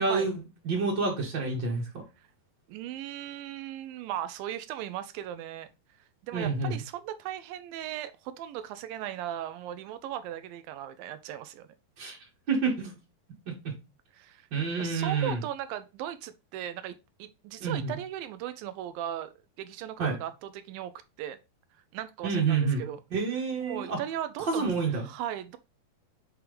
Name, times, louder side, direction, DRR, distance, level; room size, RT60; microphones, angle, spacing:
voice 1, 0.0-2.0 6.3-6.7 12.0-12.2 12.5-13.0 14.5-15.4 17.6-18.0 20.0-20.2 22.2-22.8 23.1-24.0 24.4-25.0, right 4 dB, 45° right, 1.7 m, -28 dB
voice 2, 2.7-5.7 6.2-11.7 14.1-14.5 14.8-20.9 21.2-21.4 21.9-23.0 23.6-25.6, right 11 dB, 80° right, 2.1 m, -37 dB
6.1 x 4.8 x 3.2 m
omnidirectional pair, 4.4 m